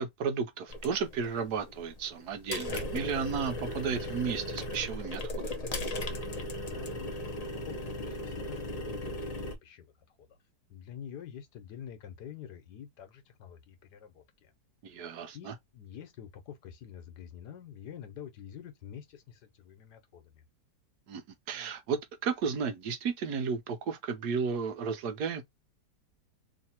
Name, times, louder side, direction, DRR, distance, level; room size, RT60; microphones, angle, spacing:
voice 1, 0.0-5.5 14.8-15.5 21.1-21.2 21.5-25.4, right 6 dB, 70° right, 1.2 m, -33 dB
sound 1, 0.7-9.6, left 1 dB, 40° left, 0.5 m, -37 dB
voice 2, 6.6-9.9 10.3-10.4 10.7-14.5 14.9-20.4, left 9 dB, 70° left, 1.4 m, -47 dB
3.2 x 2.9 x 4.2 m
omnidirectional pair, 1.9 m